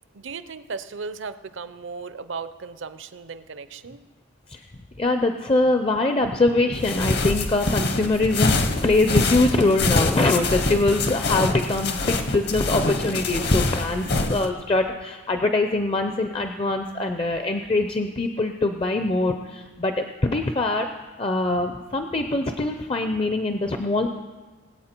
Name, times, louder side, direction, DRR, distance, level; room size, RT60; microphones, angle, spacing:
voice 1, 0.1-4.0, right 4 dB, 65° right, 13 dB, 0.6 m, -36 dB
voice 2, 5.0-8.5 8.8-20.9 21.2-24.1, left 2 dB, 25° left, 6 dB, 0.5 m, -23 dB
sound 1, 6.7-14.5, left 2 dB, 50° left, 0.9 m, -24 dB
20.5 x 8.2 x 4.4 m, 1.3 s
head